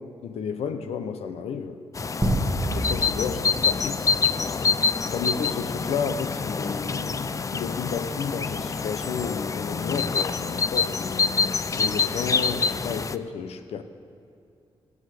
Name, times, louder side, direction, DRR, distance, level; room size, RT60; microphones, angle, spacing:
voice 1, 0.2-1.8 2.7-4.0 5.0-11.2 11.7-13.8, left 6 dB, 85° left, 8 dB, 0.9 m, -32 dB
sound 1, 1.9-13.1, left 5 dB, 30° left, 0.5 m, -26 dB
sound 2, 2.2-4.8, right 1 dB, 15° right, 1.6 m, -29 dB
16.0 x 8.3 x 7.8 m, 2.4 s
cardioid pair, 85°, 10 cm